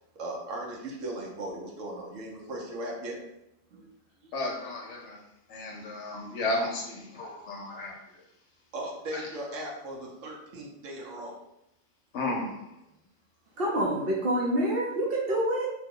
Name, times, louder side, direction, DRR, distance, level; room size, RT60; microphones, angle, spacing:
voice 1, 0.2-3.2 3.7-3.9 7.1-7.3 8.7-11.4, right 1 dB, 75° right, -2 dB, 1.1 m, -38 dB
voice 2, 4.3-5.2 5.5-7.9 9.1-9.2 12.1-12.5, left 2 dB, 65° left, 0 dB, 0.9 m, -33 dB
voice 3, 13.6-15.7, right 1 dB, 55° right, -3 dB, 0.7 m, -27 dB
2.8 x 2.1 x 3.6 m, 0.85 s
omnidirectional pair, 1.4 m